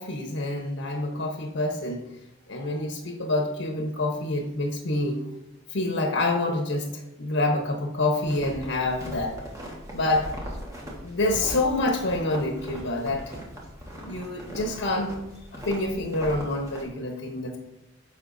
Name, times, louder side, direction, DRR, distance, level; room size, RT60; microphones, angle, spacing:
voice 1, 0.0-2.0 2.5-5.2 5.7-6.9 7.2-9.3 9.9-10.3 11.0-13.3 14.0-15.2 15.5-17.6, left 2 dB, 80° left, 2 dB, 1.0 m, -27 dB
sound 1, 8.2-16.8, equal, 15° right, 1.5 m, -40 dB
9.7 x 6.5 x 2.7 m, 0.90 s
head